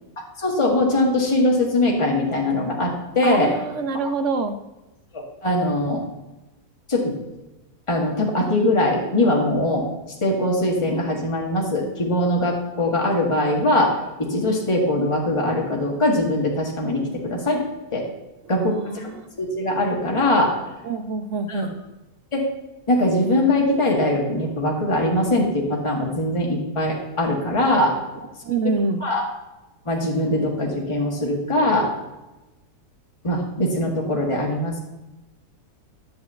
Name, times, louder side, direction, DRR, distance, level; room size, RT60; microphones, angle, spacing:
voice 1, 0.4-3.5 4.0-4.1 5.1-6.0 6.9-7.1 7.9-9.9 10.2-13.9 14.2-17.6 17.9-18.1 18.5-19.1 19.4-20.5 21.5-21.7 22.3-22.4 22.9-27.9 29.0-29.2 29.9-31.9 33.2-34.8, left 1 dB, 20° left, -2 dB, 1.8 m, -21 dB
voice 2, 3.2-4.6 18.4-19.3 20.8-21.7 28.4-29.0, right 4 dB, 55° right, 8 dB, 1.0 m, -26 dB
11.0 x 4.7 x 8.1 m, 1.0 s
omnidirectional pair, 1.7 m